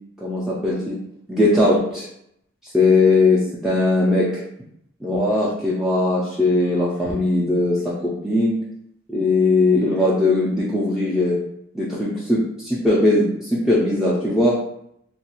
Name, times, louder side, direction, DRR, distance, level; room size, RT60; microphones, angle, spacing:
voice 1, 0.2-0.9 1.3-2.1 2.7-4.4 5.0-8.6 9.1-11.4 11.7-14.6, left 2 dB, ahead, -7 dB, 0.4 m, -19 dB
3.0 x 2.3 x 2.9 m, 0.75 s
head